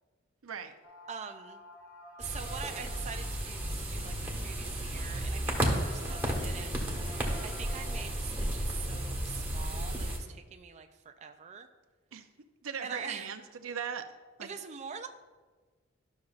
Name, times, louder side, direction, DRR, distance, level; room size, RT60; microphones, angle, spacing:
voice 1, 0.4-0.7 12.1-12.3 12.6-14.1 14.4-14.5, right 7 dB, 85° right, 8 dB, 0.6 m, -38 dB
sound 1, 0.8-3.8 4.8-4.9 5.3-5.4 5.6-8.0, left 1 dB, 85° left, 1.9 m, -51 dB
voice 2, 1.1-1.6 2.2-6.7 7.4-11.7 12.8-13.3 14.4-15.1, right 6 dB, 35° right, 6 dB, 0.4 m, -44 dB
sound 2, 2.2-10.2, right 1 dB, 10° right, 1.3 m, -33 dB
12.0 x 6.3 x 2.4 m, 1.4 s
head